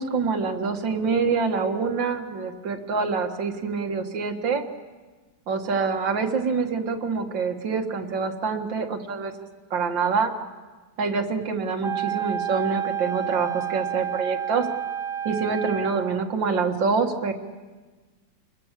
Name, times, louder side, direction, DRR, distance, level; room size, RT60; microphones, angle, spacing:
voice 1, 0.0-4.6 5.5-9.3 9.7-10.3 11.0-14.7 15.2-17.3, right 5 dB, 85° right, 4 dB, 2.4 m, -26 dB
Wind instrument woodwind instrument, 11.8-16.2, right 10 dB, 20° right, 1.2 m, -30 dB
28.5 x 21.5 x 7.5 m, 1.3 s
omnidirectional pair, 2.0 m